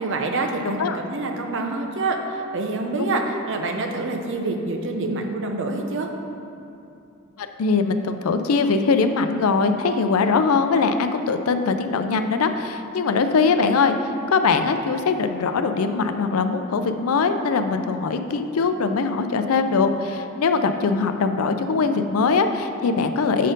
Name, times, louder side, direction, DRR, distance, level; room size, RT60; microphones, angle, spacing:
voice 1, 0.0-6.1, right 3 dB, 60° right, 3 dB, 0.7 m, -26 dB
voice 2, 7.4-23.5, left 4 dB, 85° left, 8 dB, 0.5 m, -21 dB
7.4 x 4.3 x 5.2 m, 2.7 s
head